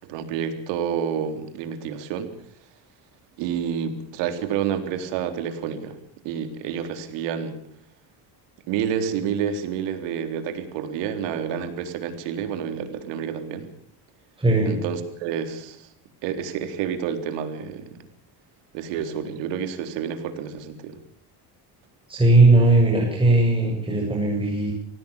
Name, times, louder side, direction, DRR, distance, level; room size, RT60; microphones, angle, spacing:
voice 1, 0.0-2.3 3.4-6.0 6.2-7.6 8.7-13.7 14.7-15.9 16.2-18.1 18.7-21.0, right 8 dB, 90° right, 8 dB, 3.8 m, -29 dB
voice 2, 14.4-14.8 22.1-24.7, right 2 dB, 10° right, -2 dB, 7.9 m, -18 dB
25.5 x 17.5 x 7.1 m, 0.62 s
cardioid pair, 120°, 42 cm